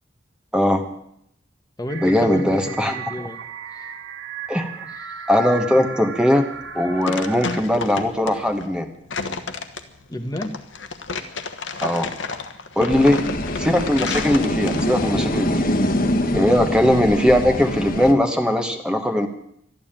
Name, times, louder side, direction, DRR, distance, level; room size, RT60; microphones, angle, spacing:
voice 1, 0.5-0.8 2.0-2.9 4.5-4.7 5.3-6.5 6.7-8.9 11.8-12.1 12.8-13.2 13.6-15.7 16.3-19.3, left 1 dB, 5° right, 5 dB, 1.1 m, -19 dB
voice 2, 1.8-3.4 3.7-3.9 4.9-5.3 10.1-10.5 12.8-13.2 16.3-16.6, left 1 dB, 20° left, 6 dB, 1.2 m, -32 dB
sound 1, 1.9-7.6, right 6 dB, 70° right, 1.2 m, -35 dB
sound 2, 6.5-15.1, left 4 dB, 75° left, 1.2 m, -31 dB
sound 3, 12.9-18.1, left 1 dB, 50° left, 1.3 m, -24 dB
12.5 x 12.0 x 8.9 m, 0.75 s
head